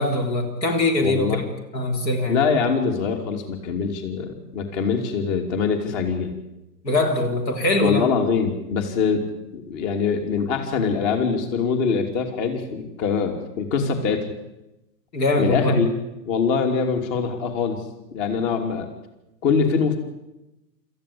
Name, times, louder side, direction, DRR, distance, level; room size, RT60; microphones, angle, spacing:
voice 1, 0.0-2.4 6.8-8.1 15.1-15.8, left 1 dB, 85° left, 4 dB, 3.9 m, -22 dB
voice 2, 1.0-1.4 2.3-6.3 7.8-9.2 9.5-14.2 15.4-15.9 16.3-17.8 18.1-18.9 19.4-20.0, left 5 dB, 50° left, 5 dB, 3.1 m, -23 dB
26.5 x 14.5 x 8.7 m, 0.96 s
hypercardioid pair, 115°, 49 cm